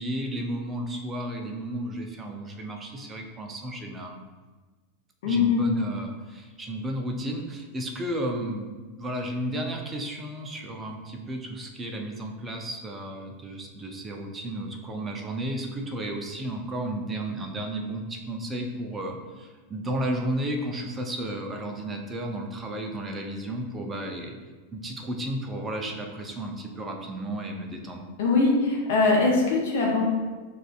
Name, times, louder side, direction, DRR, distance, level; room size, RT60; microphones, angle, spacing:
voice 1, 0.0-4.2 5.2-24.3 24.7-28.1, right 1 dB, 20° right, 3 dB, 0.6 m, -33 dB
voice 2, 5.2-5.6 28.2-30.0, left 3 dB, 55° left, -2 dB, 0.8 m, -22 dB
6.2 x 2.6 x 2.4 m, 1.3 s
figure-of-eight pair, 90°, 0 cm